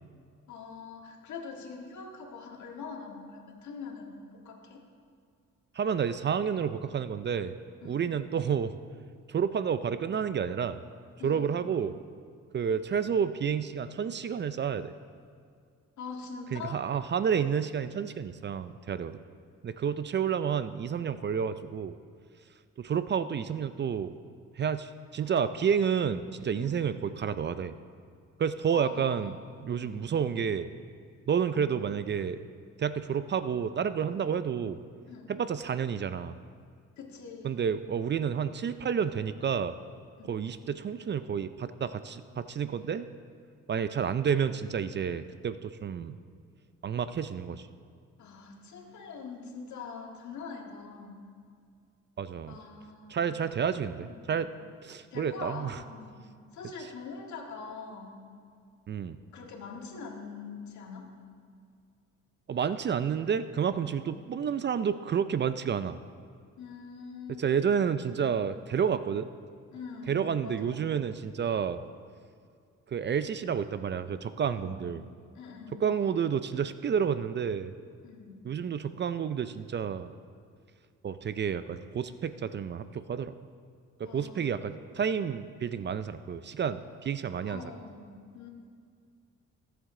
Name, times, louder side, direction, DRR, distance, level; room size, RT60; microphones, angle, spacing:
voice 1, 0.5-4.8 7.8-8.0 11.2-11.6 16.0-16.9 26.5-26.9 28.7-29.4 29.7-30.1 34.1-34.3 35.1-35.3 37.0-37.6 40.2-40.4 48.2-51.3 52.5-53.3 54.0-54.3 55.1-56.2 56.5-58.2 59.3-61.2 64.0-64.2 66.6-67.5 68.1-68.4 69.7-70.9 74.5-74.9 75.3-75.8 78.0-78.5 84.0-84.5 87.5-88.5, left 5 dB, 70° left, 1 dB, 1.9 m, -43 dB
voice 2, 5.7-7.5 7.8-8.8 9.3-10.8 11.2-12.0 12.5-14.9 16.5-19.2 19.6-21.9 22.8-24.1 24.6-27.7 28.4-29.3 29.6-30.7 31.3-32.4 32.8-34.8 35.3-36.4 37.4-39.7 40.3-43.1 43.7-46.2 46.8-47.7 52.2-52.6 53.1-54.5 54.8-55.8 58.9-59.2 62.5-66.0 67.4-69.3 70.1-71.8 72.9-75.0 75.8-77.7 78.4-80.1 81.0-83.3 84.0-87.6, right 7 dB, 35° right, 12 dB, 0.4 m, -30 dB
18.5 x 8.0 x 3.8 m, 2.2 s
cardioid pair, 90°, 30 cm